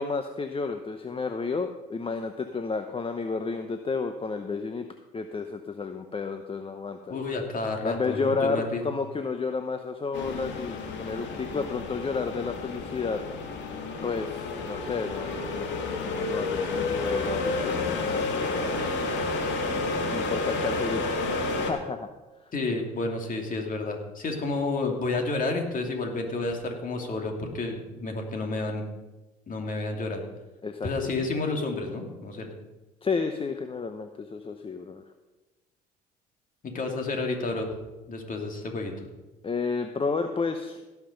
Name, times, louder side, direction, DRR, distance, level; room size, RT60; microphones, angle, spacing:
voice 1, 0.0-4.9 5.1-7.1 7.8-13.2 14.0-18.8 20.1-21.3 21.7-22.1 30.6-30.9 33.0-35.0 39.4-40.8, left 4 dB, 30° left, 7 dB, 0.9 m, -31 dB
voice 2, 7.1-8.8 22.5-28.9 29.5-30.2 30.8-32.5 36.6-37.7 38.1-38.9, left 3 dB, 45° left, 3 dB, 2.7 m, -30 dB
sound 1, 10.1-21.7, left 3 dB, 65° left, 2.0 m, -30 dB
17.5 x 5.9 x 5.3 m, 1.1 s
hypercardioid pair, 60°, 20 cm